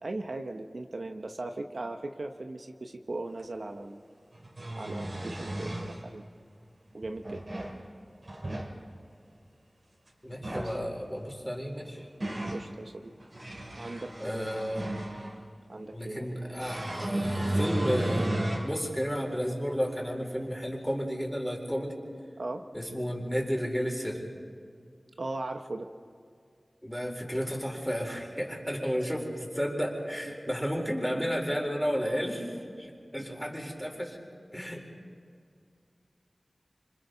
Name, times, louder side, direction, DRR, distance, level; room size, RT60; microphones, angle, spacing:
voice 1, 0.0-4.0 4.8-6.2 6.9-7.4 10.5-10.8 12.5-13.1 13.7-14.5 15.7-16.3 22.4-22.6 25.2-25.9 33.2-33.3, right 2 dB, 75° right, 5 dB, 1.0 m, -38 dB
sound 1, 3.4-3.5 4.3-6.0 7.0-7.8 8.2-8.7 10.3-10.8 11.7-12.6 13.2-15.4 16.6-18.7 19.2-19.3 20.9-21.0, right 1 dB, 50° right, 4.0 m, -33 dB
voice 2, 10.2-12.0 14.2-14.9 15.9-21.9 22.7-24.2 26.8-32.5 32.8-34.2 34.5-34.8, equal, 5° left, 0 dB, 4.2 m, -32 dB
27.5 x 25.5 x 4.0 m, 2.3 s
wide cardioid pair, 55°, 0 cm